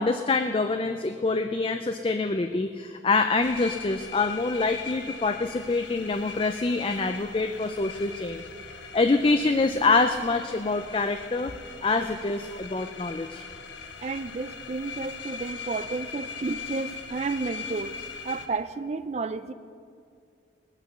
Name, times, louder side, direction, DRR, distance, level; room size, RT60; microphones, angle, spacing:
voice 1, 0.0-8.5 8.9-11.5 11.8-13.4, left 3 dB, 30° left, 7 dB, 0.4 m, -25 dB
sound 1, 3.4-18.5, left 5 dB, 75° left, 1.2 m, -40 dB
voice 2, 14.0-18.0 18.2-19.5, right 4 dB, 35° right, 13 dB, 0.4 m, -32 dB
19.0 x 9.0 x 6.8 m, 2.3 s
head